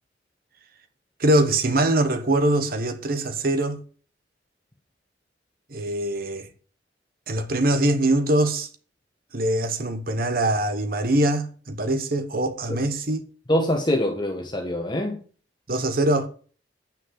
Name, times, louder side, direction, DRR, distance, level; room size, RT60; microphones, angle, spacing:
voice 1, 1.2-3.8 5.7-6.5 7.3-8.7 9.3-13.2 15.7-16.3, right 1 dB, 55° right, 1.1 m, -23 dB
voice 2, 13.5-15.2, left 1 dB, 25° left, 1.3 m, -24 dB
8.8 x 6.4 x 7.6 m
head